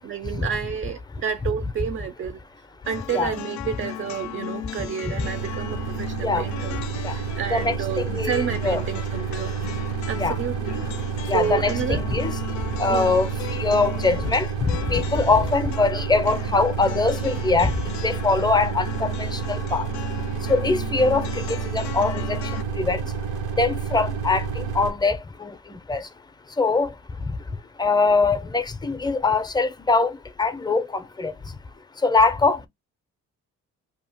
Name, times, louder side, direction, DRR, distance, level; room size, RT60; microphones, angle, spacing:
voice 1, 0.0-2.4 2.9-9.6 10.1-10.9 11.3-12.0 12.9-13.2, right 7 dB, 40° right, 0.4 m, -30 dB
sound 1, 2.8-22.6, left 11 dB, 65° left, 0.4 m, -37 dB
sound 2, 5.2-24.9, right 6 dB, 85° right, 0.9 m, -29 dB
voice 2, 6.0-6.5 6.9-8.8 9.4-10.4 11.2-19.9 20.2-31.6 31.9-32.7, left 3 dB, 15° left, 0.5 m, -24 dB
2.7 x 2.4 x 3.4 m
cardioid pair, 90°, 30 cm